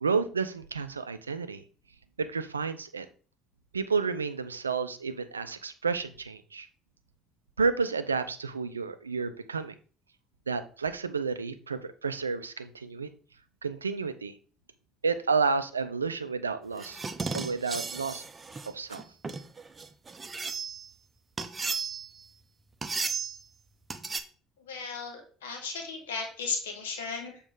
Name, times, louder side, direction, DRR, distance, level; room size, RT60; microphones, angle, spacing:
voice 1, 0.0-1.6 2.2-3.1 3.7-6.7 7.6-9.7 10.5-13.1 13.6-14.3 15.0-17.0 17.3-18.2 18.7-19.0, right 5 dB, 90° right, 11 dB, 0.4 m, -30 dB
sound 1, 16.8-20.9 21.4-22.2 22.8-23.4 23.9-24.2, right 4 dB, 25° right, 0.7 m, -35 dB
voice 2, 24.7-27.4, left 4 dB, 75° left, 3 dB, 1.5 m, -35 dB
7.0 x 4.2 x 3.7 m, 0.41 s
figure-of-eight pair, 60°, 0 cm